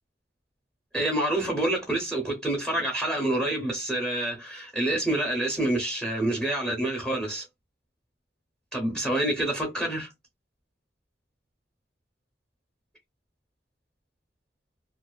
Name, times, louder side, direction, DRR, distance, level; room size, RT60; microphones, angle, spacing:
voice 1, 0.9-7.4 8.7-10.1, right 1 dB, ahead, 0.6 m, -27 dB
2.4 x 2.2 x 2.3 m
head